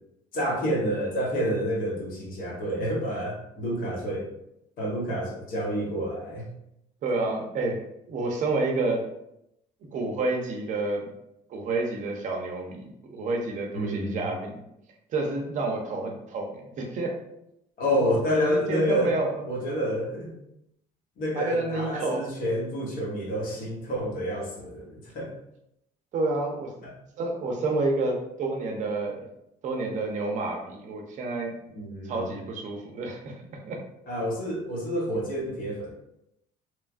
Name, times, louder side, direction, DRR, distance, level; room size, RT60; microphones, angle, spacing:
voice 1, 0.3-4.3 4.8-6.5 13.7-14.3 17.8-19.1 19.5-20.3 21.2-25.3 26.8-26.9 31.7-32.3 34.1-35.9, equal, 60° left, -3 dB, 1.0 m, -28 dB
voice 2, 7.0-7.8 8.1-9.1 9.9-11.1 11.5-14.6 15.1-17.2 17.9-18.1 18.5-19.4 21.3-22.2 26.1-26.7 27.2-29.3 29.6-31.5 32.0-33.8, right 2 dB, 50° right, 1 dB, 0.6 m, -29 dB
2.9 x 2.3 x 2.4 m, 0.81 s
cardioid pair, 135°, 16 cm